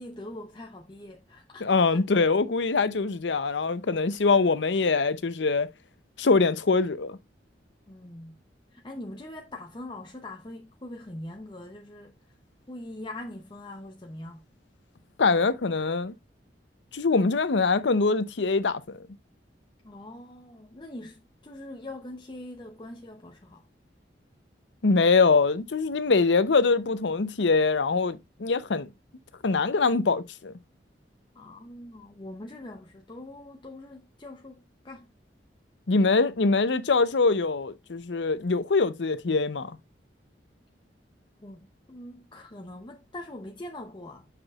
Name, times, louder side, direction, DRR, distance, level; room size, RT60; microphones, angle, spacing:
voice 1, 0.0-2.0 7.9-8.4 8.7-12.2 12.7-14.5 19.8-23.7 31.3-35.1 41.4-44.3, left 1 dB, 25° left, 0.7 m, -42 dB
voice 2, 1.6-5.7 6.2-7.2 15.2-16.1 16.9-19.0 24.8-28.9 29.4-30.5 35.9-39.7, left 4 dB, 85° left, 0.7 m, -23 dB
7.9 x 6.0 x 2.3 m
head